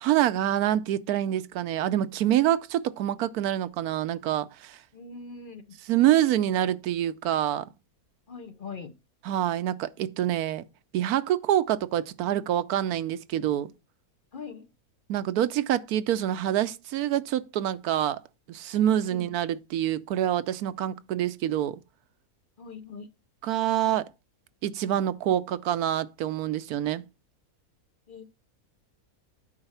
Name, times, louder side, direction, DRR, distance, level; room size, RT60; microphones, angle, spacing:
voice 1, 0.0-4.8 5.9-7.7 9.3-10.6 10.9-13.7 15.1-18.2 18.5-21.8 23.4-24.1 24.6-27.0, right 12 dB, 80° right, 1.1 m, -26 dB
voice 2, 4.9-5.8 8.3-9.0 14.3-14.7 19.0-19.3 22.6-23.1 28.1-28.3, left 5 dB, 50° left, 0.7 m, -41 dB
8.8 x 5.4 x 5.6 m
omnidirectional pair, 1.6 m